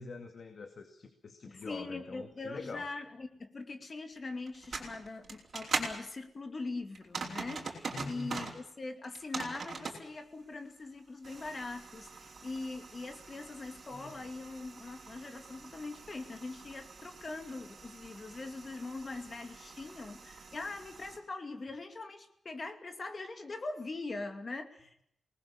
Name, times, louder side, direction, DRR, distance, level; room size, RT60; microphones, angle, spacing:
voice 1, 0.0-2.9 7.9-8.4 13.9-14.2, left 3 dB, 50° left, 6 dB, 2.1 m, -45 dB
voice 2, 1.5-25.0, left 3 dB, 35° left, 7 dB, 2.5 m, -42 dB
sound 1, 4.5-6.0 6.9-8.6 9.0-10.0 11.2-21.2, right 4 dB, 50° right, 4.9 m, -43 dB
28.0 x 19.5 x 7.2 m, 0.73 s
wide cardioid pair, 155°, 0 cm